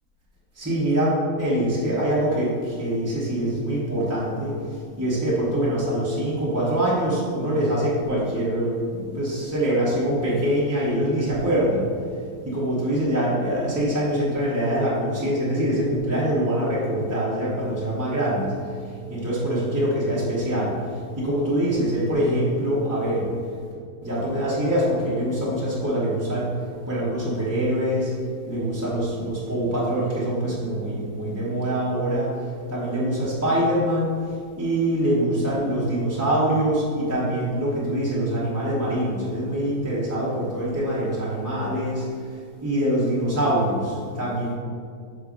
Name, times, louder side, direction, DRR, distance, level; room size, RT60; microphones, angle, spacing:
voice 1, 0.6-4.5 5.0-11.9 12.4-18.6 19.1-20.7 21.2-23.3 24.0-26.5 26.9-28.1 28.4-32.3 32.7-34.1 34.6-42.1 42.6-44.5, right 1 dB, 15° right, -8 dB, 0.6 m, -24 dB
5.5 x 4.0 x 5.0 m, 2.2 s
omnidirectional pair, 1.9 m